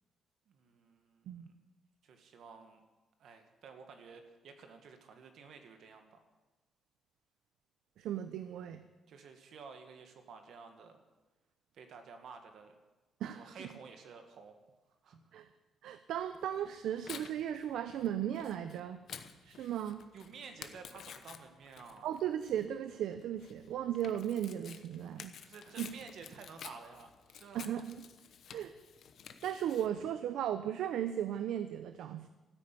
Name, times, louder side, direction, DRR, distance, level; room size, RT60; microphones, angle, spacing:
voice 1, 0.5-1.5 2.0-2.8 3.2-6.2 9.1-11.0 11.7-12.8 13.3-14.5 15.0-15.2 20.1-22.1 25.4-27.7 29.6-29.7, right 5 dB, 60° right, 6 dB, 1.7 m, -52 dB
voice 2, 8.0-8.8 13.2-13.4 15.3-15.5 15.8-19.0 19.4-20.0 22.0-25.3 25.8-25.9 27.5-28.0 28.5-28.7 29.4-32.3, right 10 dB, 80° right, 10 dB, 0.7 m, -36 dB
Tearing, 16.3-29.9, left 8 dB, 55° left, 0.9 m, -52 dB
13.5 x 9.9 x 8.4 m, 1.1 s
cardioid pair, 160°, 0 cm